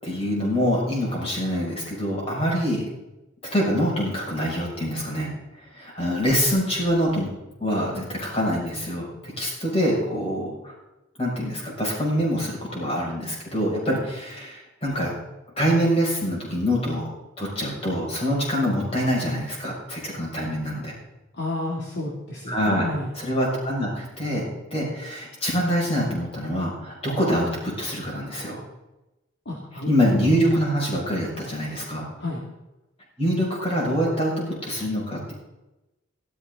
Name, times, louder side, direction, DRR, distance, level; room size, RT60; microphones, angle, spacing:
voice 1, 0.0-2.8 3.4-5.3 5.7-7.3 7.6-10.7 11.2-15.1 15.6-17.1 17.4-20.9 22.5-22.9 23.2-28.6 29.9-32.1 33.2-34.3 34.6-35.3, equal, 30° left, -3 dB, 6.4 m, -25 dB
voice 2, 21.3-23.1 29.5-29.9 32.2-32.4, left 1 dB, 55° left, -3 dB, 2.5 m, -30 dB
15.5 x 13.5 x 4.0 m, 0.97 s
head